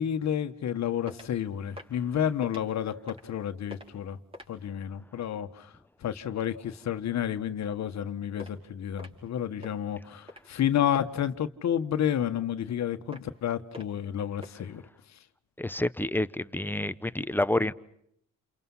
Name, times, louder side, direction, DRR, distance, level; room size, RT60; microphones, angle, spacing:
voice 1, 0.0-4.2 4.5-5.7 6.0-14.8, left 9 dB, 65° left, 1.5 m, -30 dB
sound 1, 1.1-1.4 1.7-2.0 2.4-2.7 3.0-3.4 3.7-3.9 4.3-4.6 8.4-8.5 9.0-9.3 9.6-9.8 10.3-10.6 10.9-11.1 13.1-13.4 13.7-14.0 14.4-14.5, left 1 dB, 20° right, 5.1 m, -45 dB
voice 2, 15.6-17.7, left 1 dB, 5° left, 0.9 m, -28 dB
29.5 x 28.5 x 5.7 m
cardioid pair, 90°, 30 cm